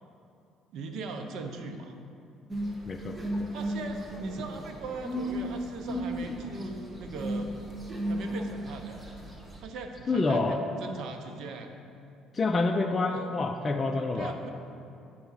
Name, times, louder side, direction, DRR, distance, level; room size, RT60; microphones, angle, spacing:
voice 1, 0.7-2.0 3.5-7.5 8.1-9.0 9.6-11.7 13.1-13.3 14.1-14.5, right 3 dB, 65° right, 4 dB, 0.8 m, -39 dB
sound 1, 2.5-9.6, equal, 20° right, 1.0 m, -35 dB
voice 2, 2.9-3.5 10.1-10.6 12.3-14.3, left 3 dB, 25° left, 3 dB, 0.4 m, -28 dB
8.8 x 4.7 x 5.6 m, 2.6 s
cardioid pair, 115°, 0 cm